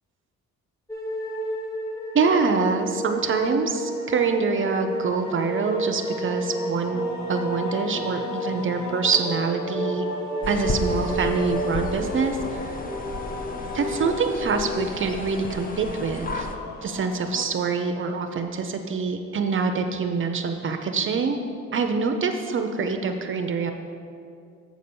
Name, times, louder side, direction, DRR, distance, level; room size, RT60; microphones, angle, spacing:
sound 1, 0.9-16.0, equal, 10° left, 1.5 m, -32 dB
voice 1, 2.1-7.0 7.3-10.1 10.5-12.6 13.7-16.5 16.8-21.4 21.7-23.7, right 5 dB, 45° right, 5 dB, 0.5 m, -25 dB
sound 2, 4.9-17.5, left 2 dB, 65° left, 0.9 m, -37 dB
sound 3, 10.4-16.6, left 1 dB, 30° left, 0.6 m, -33 dB
7.5 x 4.1 x 6.8 m, 2.4 s
cardioid pair, 90°, 30 cm